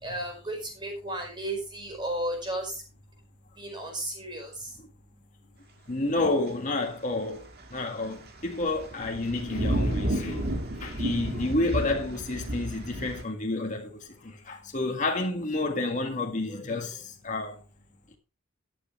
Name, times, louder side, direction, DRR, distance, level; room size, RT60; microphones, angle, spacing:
voice 1, 0.0-2.7 3.6-4.7, right 1 dB, 25° right, 4.9 m, -34 dB
voice 2, 5.9-17.6, left 2 dB, 40° left, 1.8 m, -30 dB
sound 1, 8.0-8.1 8.4-13.2, right 1 dB, 50° right, 1.9 m, -31 dB
13.0 x 9.8 x 3.2 m
head